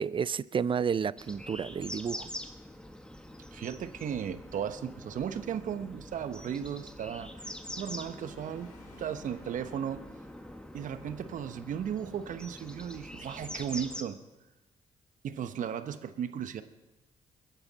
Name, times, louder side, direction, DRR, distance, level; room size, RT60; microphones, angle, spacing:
voice 1, 0.0-2.3, right 7 dB, 40° right, 20 dB, 0.5 m, -31 dB
sound 1, 1.2-14.0, left 1 dB, 5° left, 1.6 m, -45 dB
voice 2, 3.5-8.7 9.0-10.0 10.7-14.2 15.2-16.6, right 8 dB, 65° right, 11 dB, 1.0 m, -36 dB
sound 2, 7.8-12.1, left 4 dB, 75° left, 3.2 m, -58 dB
22.5 x 10.0 x 4.1 m, 1.0 s
supercardioid pair, 55°, 14 cm